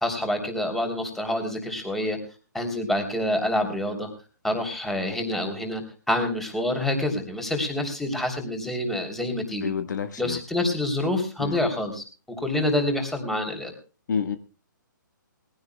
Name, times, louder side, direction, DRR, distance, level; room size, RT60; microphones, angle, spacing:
voice 1, 0.0-2.2 2.5-4.1 4.4-5.8 6.1-9.6 10.2-12.0 12.4-13.7, left 1 dB, 5° left, 4 dB, 3.2 m, -27 dB
voice 2, 9.6-10.4 11.4-11.6 14.1-14.4, left 7 dB, 60° left, 9 dB, 1.5 m, -28 dB
21.5 x 16.0 x 2.3 m, 0.35 s
hypercardioid pair, 150°, 11 cm